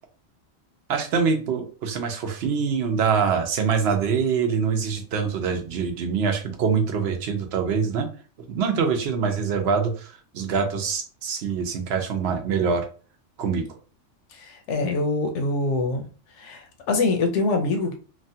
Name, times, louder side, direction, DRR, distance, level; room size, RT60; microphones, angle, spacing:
voice 1, 0.9-8.1 8.5-12.9 13.4-13.7, right 6 dB, 65° right, 5 dB, 0.8 m, -24 dB
voice 2, 14.4-16.1 16.4-17.9, left 3 dB, 75° left, 5 dB, 0.9 m, -24 dB
3.0 x 2.2 x 2.7 m, 0.38 s
omnidirectional pair, 1.3 m